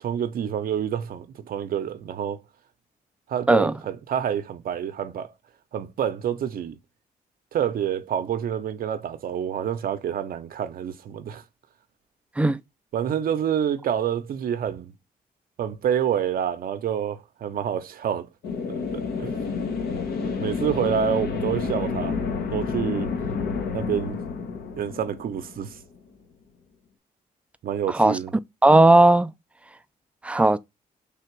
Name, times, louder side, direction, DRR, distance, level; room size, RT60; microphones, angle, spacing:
voice 1, 0.0-2.4 3.3-5.3 5.7-6.7 7.5-11.4 12.9-14.9 15.6-18.3 18.7-19.4 20.2-22.2 22.5-23.1 23.7-24.2 24.7-25.8 27.6-28.3, right 9 dB, 65° right, 0.6 m, -28 dB
sound 1, 18.4-26.0, left 5 dB, 80° left, 1.1 m, -29 dB
voice 2, 27.9-28.2 28.6-29.3 30.2-30.6, right 2 dB, 10° right, 0.3 m, -16 dB
3.4 x 2.8 x 4.5 m
cardioid pair, 90°, 16 cm